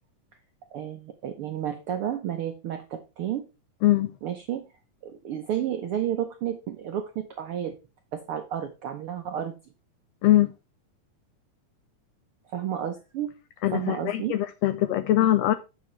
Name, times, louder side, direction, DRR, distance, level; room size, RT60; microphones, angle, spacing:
voice 1, 0.7-3.5 4.2-4.6 5.0-7.7 8.1-9.6 12.5-13.3 13.7-14.3, right 10 dB, 80° right, 1.2 m, -31 dB
voice 2, 3.8-4.1 10.2-10.5 13.6-15.5, left 14 dB, 85° left, 1.4 m, -22 dB
8.9 x 7.7 x 3.2 m
omnidirectional pair, 3.6 m